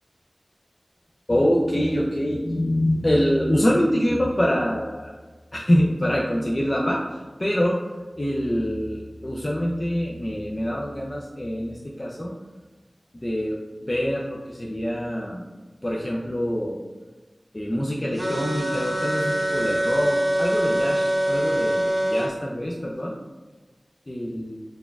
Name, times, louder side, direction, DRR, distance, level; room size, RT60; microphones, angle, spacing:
voice 1, 1.3-5.1 5.5-7.0 7.4-7.8 8.2-12.3 13.2-15.4 15.8-16.8 17.5-23.2 24.1-24.6, equal, 35° left, -3 dB, 0.4 m, -25 dB
sound 1, 18.2-22.3, right 1 dB, 20° right, 0.7 m, -24 dB
4.0 x 2.3 x 3.3 m, 1.3 s
wide cardioid pair, 55°, 0 cm